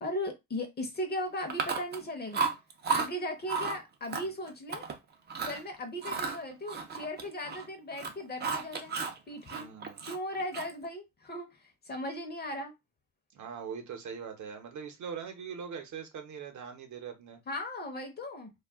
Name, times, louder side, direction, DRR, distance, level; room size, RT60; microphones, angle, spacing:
voice 1, 0.0-2.5 2.9-4.8 5.4-9.0 9.3-9.7 10.0-12.7 17.5-18.5, left 1 dB, 25° left, 0.7 m, -37 dB
Chewing mastication, 1.5-2.0 2.3-3.1 3.5-3.8 4.1-4.9 5.3-5.6 6.0-7.7 7.9-9.2 9.5-10.8, right 5 dB, 30° right, 0.6 m, -33 dB
voice 2, 9.5-10.1 13.3-17.4, right 6 dB, 50° right, 0.9 m, -42 dB
2.4 x 2.2 x 3.4 m
cardioid pair, 110°, 37 cm